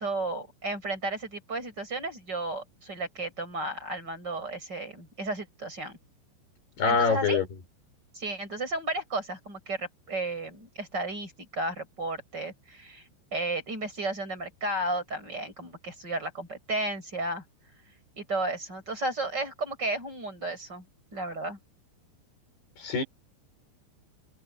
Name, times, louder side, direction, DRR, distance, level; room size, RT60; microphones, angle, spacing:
voice 1, 0.0-6.0 6.9-7.4 8.1-13.0 13.3-17.4 18.2-20.9 21.1-21.6, right 2 dB, 20° right, 7.6 m, -33 dB
voice 2, 6.8-7.5 22.8-23.0, left 5 dB, 55° left, 6.9 m, -24 dB
omnidirectional pair, 5.5 m